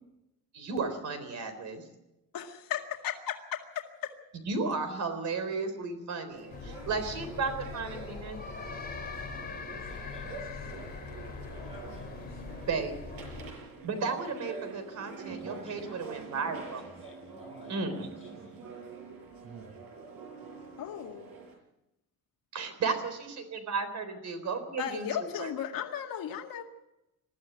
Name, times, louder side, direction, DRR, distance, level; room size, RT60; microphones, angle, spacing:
voice 1, 0.5-1.8 4.5-8.4 12.7-13.2 13.8-16.8 17.7-18.1 22.5-25.5, right 4 dB, 55° right, 8 dB, 3.9 m, -34 dB
voice 2, 2.3-4.1 20.8-21.3 24.8-26.6, left 10 dB, 80° left, 3 dB, 2.1 m, -36 dB
sound 1, 6.3-21.5, right 4 dB, 85° right, 6.9 m, -46 dB
sound 2, 6.5-13.5, left 5 dB, 25° left, 3.5 m, -42 dB
voice 3, 9.3-10.9 11.7-12.7 15.2-16.2 16.6-18.6, equal, 15° right, -2 dB, 6.3 m, -51 dB
21.0 x 14.0 x 9.1 m, 0.93 s
cardioid pair, 180°, 34 cm